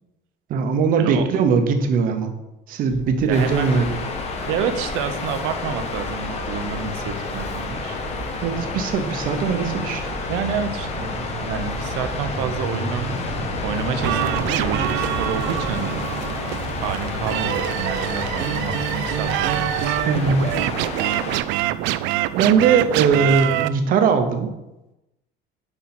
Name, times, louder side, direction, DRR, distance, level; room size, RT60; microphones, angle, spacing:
voice 1, 0.5-2.3 2.7-3.9 8.4-10.0 20.0-20.5 22.4-24.5, right 5 dB, 45° right, 7 dB, 0.9 m, -20 dB
sound 1, 2.9-21.9, equal, ahead, 1.5 m, -34 dB
Waves surf, 3.3-21.4, left 4 dB, 30° left, 0.9 m, -31 dB
voice 2, 3.3-3.7 4.5-8.0 10.3-13.1 13.6-16.0 16.8-19.9, right 7 dB, 80° right, 9 dB, 0.9 m, -29 dB
sound 2, 14.0-23.7, right 13 dB, 65° right, 0.4 m, -25 dB
9.8 x 4.5 x 4.4 m, 0.95 s
cardioid pair, 175°, 20 cm